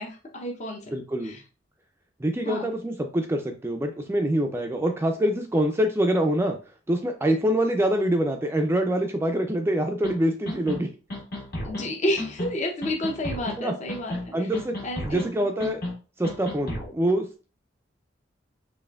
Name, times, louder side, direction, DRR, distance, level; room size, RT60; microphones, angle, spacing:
voice 1, 0.0-0.8 1.2-1.4 2.4-2.7 11.6-14.1 14.8-15.2, left 1 dB, 40° left, 1 dB, 0.6 m, -30 dB
voice 2, 0.9-1.3 2.2-6.6 6.9-10.9 13.6-13.7 14.3-14.7 15.0-15.8 16.2-17.5, right 1 dB, 15° right, 4 dB, 0.4 m, -25 dB
sound 1, 10.0-10.1 10.5-10.8 11.1-11.9 12.2-12.5 12.8-13.6 13.9-14.3 14.5-15.3 15.6-15.9 16.2-16.9, left 1 dB, 55° left, 1.6 m, -33 dB
4.2 x 3.2 x 2.3 m, 0.34 s
head